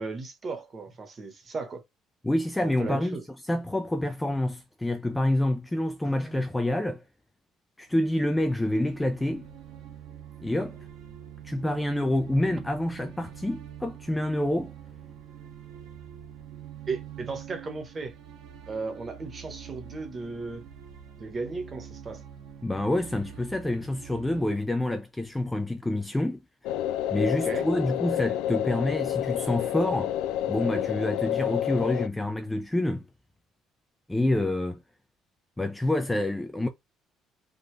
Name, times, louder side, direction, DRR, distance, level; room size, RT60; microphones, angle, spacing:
voice 1, 0.0-1.8 2.6-3.2 6.0-6.5 16.9-18.1 18.7-20.7 21.2-22.3 27.4-27.7, right 4 dB, 25° right, 1.2 m, -36 dB
voice 2, 2.2-3.2 3.5-7.0 7.8-9.5 10.4-10.8 11.4-14.7 22.6-26.4 27.1-30.1 30.5-33.0 34.1-34.8 35.6-36.7, left 1 dB, 5° left, 0.5 m, -27 dB
sound 1, 7.9-24.4, right 9 dB, 80° right, 1.7 m, -45 dB
sound 2, 26.6-32.1, left 11 dB, 85° left, 0.3 m, -29 dB
3.9 x 3.7 x 3.2 m
cardioid pair, 160°, 0 cm